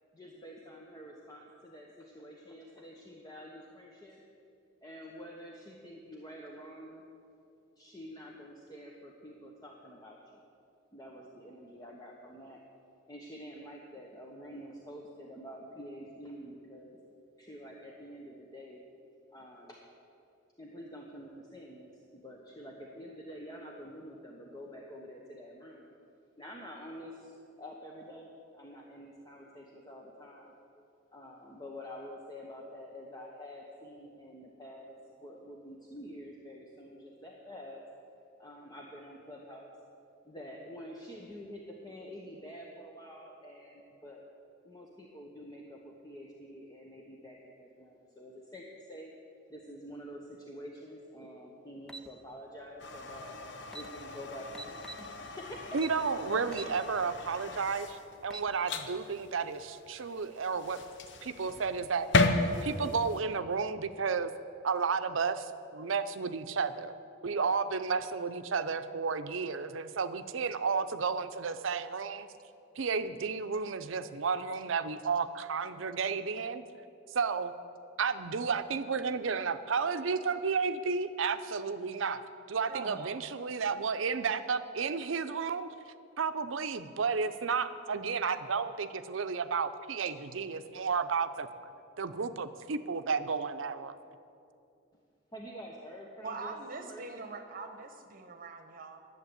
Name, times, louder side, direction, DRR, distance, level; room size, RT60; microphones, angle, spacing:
voice 1, 0.1-4.2 4.8-7.1 7.8-10.2 10.9-12.6 13.1-17.0 17.4-18.8 19.3-19.8 20.6-25.9 26.4-27.3 27.6-30.6 31.1-37.8 38.4-39.7 40.2-44.2 44.6-49.1 49.5-53.3 53.7-55.8 56.3-56.5 95.3-96.5 96.9-97.3, equal, 20° left, -1 dB, 1.0 m, -47 dB
sound 1, 51.9-52.1 53.3-53.4 53.6-53.9 54.5-55.1 55.8-56.0 56.5-56.7 57.2-57.3 58.1-58.5, right 3 dB, 5° left, 0.6 m, -44 dB
sound 2, 52.8-63.2, left 2 dB, 65° left, 0.8 m, -35 dB
voice 2, 55.7-60.8 61.2-62.1 62.6-64.3 64.6-66.9 67.2-72.3 72.8-76.6 77.1-77.5 78.0-82.2 82.5-85.7 86.2-91.5 92.0-94.0, right 5 dB, 80° right, 11 dB, 0.6 m, -32 dB
voice 3, 82.6-83.2 96.2-99.0, right 3 dB, 45° right, 7 dB, 1.1 m, -42 dB
11.0 x 7.3 x 9.6 m, 2.6 s
head